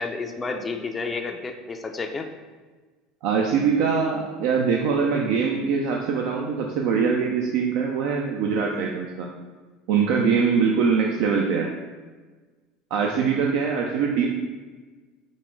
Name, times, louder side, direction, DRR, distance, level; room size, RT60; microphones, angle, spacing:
voice 1, 0.0-2.3, left 4 dB, 20° left, 4 dB, 0.3 m, -30 dB
voice 2, 3.2-9.3 9.9-11.7 12.9-14.3, right 6 dB, 70° right, 1 dB, 0.4 m, -23 dB
5.1 x 2.5 x 3.6 m, 1.4 s
supercardioid pair, 130°, 0 cm